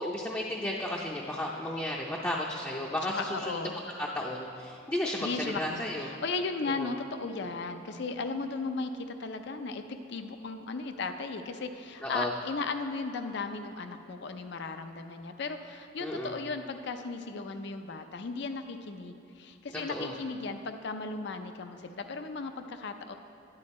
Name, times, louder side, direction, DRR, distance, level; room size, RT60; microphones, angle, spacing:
voice 1, 0.0-3.6 4.0-6.1 6.8-6.9 12.0-12.3 16.0-16.4 19.7-20.1, left 1 dB, 10° left, -3 dB, 0.5 m, -33 dB
voice 2, 3.1-3.8 5.2-23.1, left 3 dB, 60° left, 8 dB, 0.5 m, -36 dB
11.5 x 9.8 x 4.2 m, 2.7 s
head